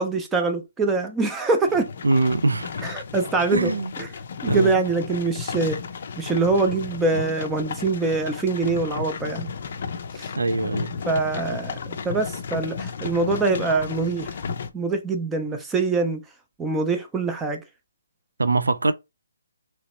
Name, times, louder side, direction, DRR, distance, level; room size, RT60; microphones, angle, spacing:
voice 1, 0.0-1.9 2.8-4.1 4.4-5.8 6.2-9.5 10.1-10.3 11.1-14.3 14.7-16.2 16.6-17.6, right 3 dB, 10° right, 0.5 m, -24 dB
sound 1, 1.7-14.7, left 5 dB, 50° left, 0.5 m, -33 dB
voice 2, 2.0-2.8 3.5-3.9 4.5-4.8 10.4-10.9 18.4-18.9, right 3 dB, 90° right, 0.4 m, -23 dB
3.0 x 2.8 x 3.0 m
hypercardioid pair, 150°, 0 cm